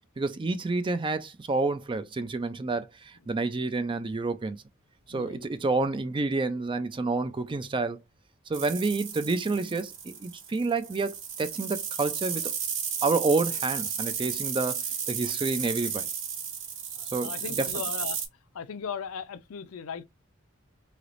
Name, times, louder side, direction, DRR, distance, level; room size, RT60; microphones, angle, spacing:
voice 1, 0.2-4.6 5.1-8.0 8.5-12.5 13.0-14.8 15.1-16.1 17.1-17.7, right 3 dB, 25° right, 0.4 m, -29 dB
voice 2, 5.1-5.5 8.7-8.8 16.9-18.2 18.5-20.0, left 6 dB, 75° left, 0.5 m, -38 dB
sound 1, 8.5-18.3, right 7 dB, 60° right, 1.0 m, -33 dB
3.3 x 2.9 x 2.5 m
head